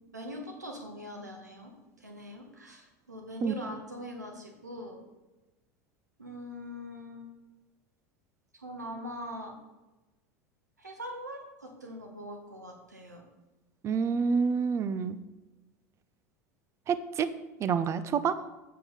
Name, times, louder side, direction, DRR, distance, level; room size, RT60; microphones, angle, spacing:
voice 1, 0.0-1.7 2.0-5.0 6.2-7.3 8.5-9.5 10.8-13.2 18.4-18.5, equal, 90° right, 1 dB, 1.5 m, -42 dB
voice 2, 13.8-15.2 16.9-17.3 17.6-18.4, right 6 dB, 30° right, 13 dB, 0.6 m, -28 dB
7.7 x 4.7 x 5.5 m, 1.1 s
figure-of-eight pair, 75°, 9 cm